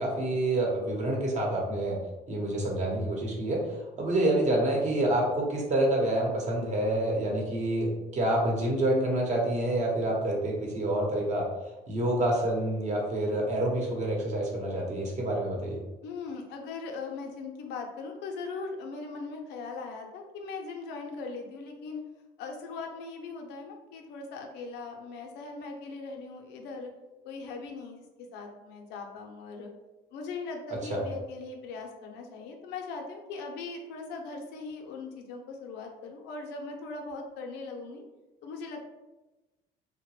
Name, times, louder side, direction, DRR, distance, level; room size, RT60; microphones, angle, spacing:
voice 1, 0.0-2.0 2.3-3.6 4.0-11.5 11.9-15.8 30.9-31.0, right 1 dB, 45° right, -1 dB, 0.9 m, -27 dB
voice 2, 16.0-22.0 22.4-26.9 27.2-28.0 28.3-29.7 30.1-38.0 38.4-38.9, left 4 dB, 85° left, 3 dB, 0.5 m, -39 dB
2.9 x 2.1 x 3.0 m, 1.1 s
cardioid pair, 110°, 17 cm